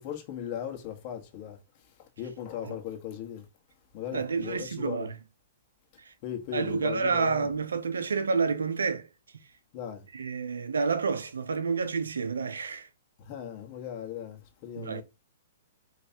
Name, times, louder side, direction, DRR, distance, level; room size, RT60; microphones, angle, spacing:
voice 1, 0.0-1.6 2.0-3.4 3.9-5.1 6.2-7.5 9.7-10.0 13.2-15.0, left 10 dB, 45° left, 1.5 m, -38 dB
voice 2, 4.1-5.2 6.0-6.1 6.5-9.1 10.1-12.9 14.8-15.0, right 5 dB, 80° right, 0.6 m, -29 dB
5.6 x 3.2 x 2.9 m
hypercardioid pair, 120°, 0 cm